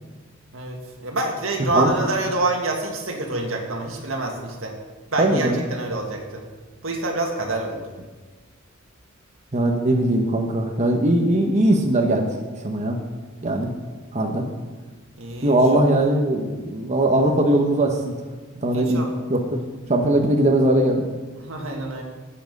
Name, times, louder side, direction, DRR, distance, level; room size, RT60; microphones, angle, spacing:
voice 1, 0.5-4.8 5.1-6.5 6.8-7.9 15.2-15.6 18.7-19.2 21.4-22.0, right 2 dB, 80° right, 1 dB, 2.0 m, -27 dB
voice 2, 5.2-5.6 9.5-12.3 12.6-13.0 13.4-13.7 14.1-14.4 15.4-18.1 18.6-19.0 19.3-19.4 19.9-21.0, right 1 dB, 35° right, 2 dB, 1.0 m, -20 dB
12.5 x 8.8 x 5.3 m, 1.4 s
head